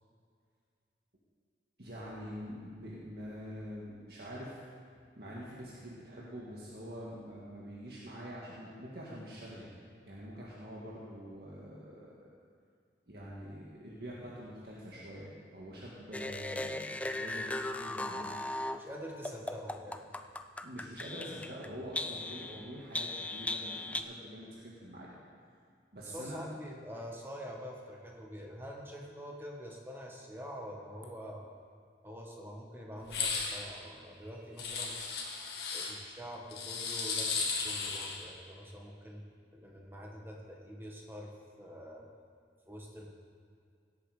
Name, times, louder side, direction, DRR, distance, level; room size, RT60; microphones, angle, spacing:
voice 1, 1.8-4.6 5.2-9.7 10.1-12.3 13.1-18.3 20.6-25.1 25.9-26.4, equal, 65° right, -6 dB, 1.8 m, -45 dB
sound 1, 16.1-18.8 19.2-21.7 21.9-24.0, left 2 dB, 10° left, 0.3 m, -37 dB
voice 2, 18.8-20.0 26.0-31.4 32.0-34.9 35.7-39.2 39.5-41.3 41.6-42.1 42.7-43.1, equal, 15° right, -1 dB, 1.5 m, -46 dB
sound 2, 33.0-33.6 34.6-35.9 36.5-38.2, left 4 dB, 70° left, 1.8 m, -35 dB
17.0 x 8.5 x 5.0 m, 2.2 s
head